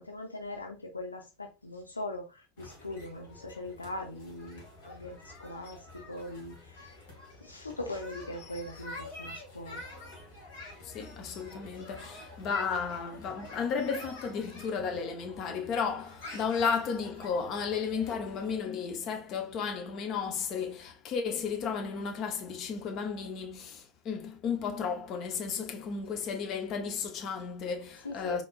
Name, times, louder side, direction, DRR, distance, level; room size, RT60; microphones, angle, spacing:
voice 1, 0.0-7.0 7.4-9.8 28.0-28.4, left 1 dB, 85° left, 0.7 m, -41 dB
sound 1, 2.6-18.6, left 2 dB, 65° left, 1.6 m, -47 dB
voice 2, 10.8-28.4, left 6 dB, 45° left, 0.9 m, -33 dB
4.1 x 3.1 x 2.4 m
figure-of-eight pair, 75°, 0 cm